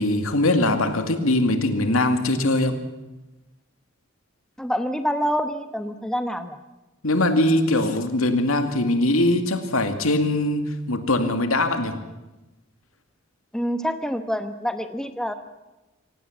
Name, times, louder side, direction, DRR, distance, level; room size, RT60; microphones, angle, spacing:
voice 1, 0.0-2.8 7.0-12.0, left 1 dB, 80° left, 7 dB, 2.3 m, -21 dB
voice 2, 4.6-6.6 13.5-15.3, equal, 5° left, 8 dB, 1.0 m, -26 dB
25.5 x 17.0 x 7.4 m, 1.0 s
head